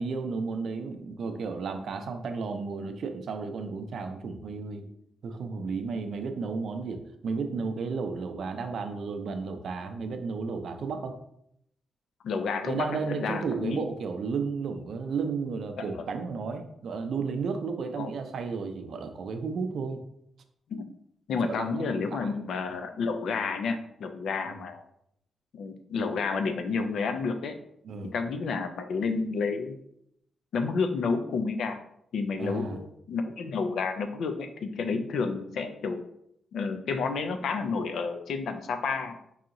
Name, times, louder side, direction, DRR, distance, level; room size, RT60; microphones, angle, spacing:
voice 1, 0.0-4.9 5.2-11.2 12.6-20.0 21.5-22.3 24.5-24.6 27.8-28.1 32.4-32.8 34.9-35.0, right 4 dB, 65° right, 7 dB, 0.4 m, -33 dB
voice 2, 12.2-13.8 15.8-16.0 18.0-18.1 20.7-20.8 21.3-24.8 25.5-27.6 28.0-29.8 30.5-31.8 32.1-36.0 36.5-39.2, left 4 dB, 75° left, 7 dB, 0.4 m, -30 dB
4.7 x 2.8 x 2.5 m, 0.75 s
cardioid pair, 120°, 0 cm